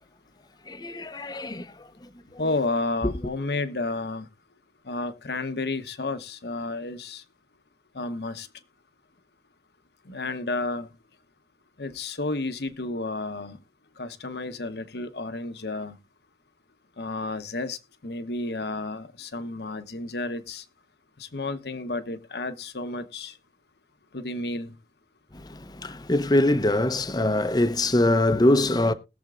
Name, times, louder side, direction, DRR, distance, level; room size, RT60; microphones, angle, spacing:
voice 1, 0.7-2.4 3.0-3.1 25.3-28.9, left 1 dB, 25° left, 0.7 m, -24 dB
voice 2, 2.4-4.3 4.8-7.2 7.9-8.5 10.0-10.9 11.8-13.6 14.0-16.0 17.0-20.6 21.2-23.3 24.1-24.7, left 2 dB, 65° left, 1.0 m, -31 dB
20.5 x 7.2 x 2.5 m
head